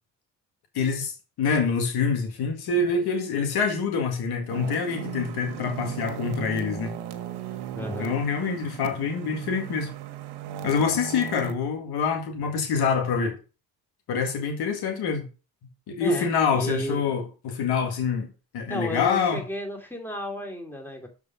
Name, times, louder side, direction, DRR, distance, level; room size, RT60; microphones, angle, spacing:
voice 1, 0.7-1.1 1.4-6.9 8.0-9.9 10.6-13.4 14.1-15.3 15.9-19.4, left 5 dB, 80° left, 2.0 m, -26 dB
sound 1, 4.5-11.5, right 10 dB, 85° right, 1.1 m, -36 dB
voice 2, 7.7-8.1 16.0-17.1 18.7-21.1, equal, 5° left, 2.8 m, -33 dB
7.0 x 4.8 x 5.6 m
supercardioid pair, 70°, 38 cm